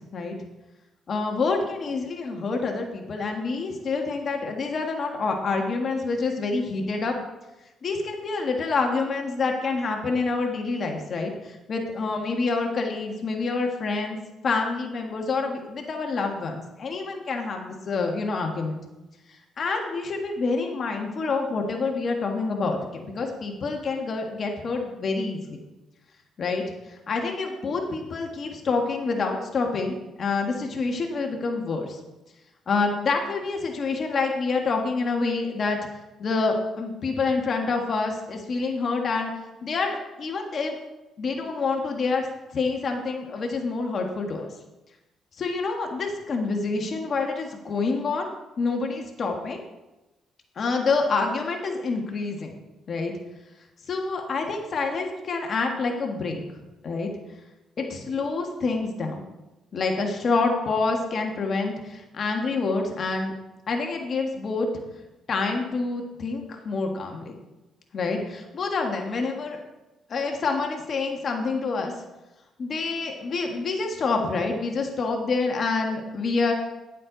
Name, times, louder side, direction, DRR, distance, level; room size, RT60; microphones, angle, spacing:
voice 1, 1.1-7.1 7.8-14.2 14.4-18.8 19.6-25.6 26.4-26.6 26.9-32.0 32.7-35.8 36.2-39.3 39.6-40.8 41.2-42.3 42.5-44.5 45.4-48.3 48.6-49.6 50.6-52.6 52.9-53.1 53.9-56.4 56.8-57.1 57.8-59.3 59.7-63.3 63.7-64.7 65.3-67.4 67.9-69.6 70.1-71.9 72.6-76.5, left 4 dB, 50° left, 2 dB, 1.6 m, -27 dB
11.0 x 7.5 x 4.0 m, 1.0 s
cardioid pair, 90°, 0 cm